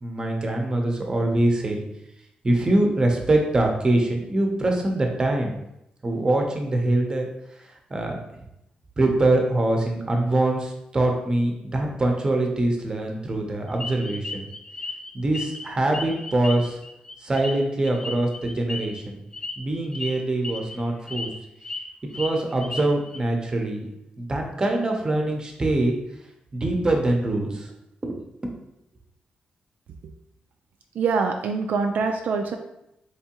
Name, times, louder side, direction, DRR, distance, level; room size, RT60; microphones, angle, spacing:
voice 1, 0.0-1.8 2.4-5.5 6.0-7.3 7.9-8.2 9.0-14.5 15.1-16.8 17.2-19.2 19.6-21.3 22.0-23.8 24.2-26.0 26.5-27.7 28.0-28.2, right 2 dB, 25° right, 2 dB, 0.7 m, -23 dB
sound 1, 13.8-15.7 15.9-19.0 19.3-19.5 19.9-20.1 20.4-20.8 21.1-21.8 22.1-23.2, left 3 dB, 25° left, 0.4 m, -35 dB
voice 2, 31.0-32.6, right 4 dB, 75° right, 4 dB, 0.3 m, -24 dB
3.5 x 3.0 x 2.9 m, 0.83 s
cardioid pair, 105°, 3 cm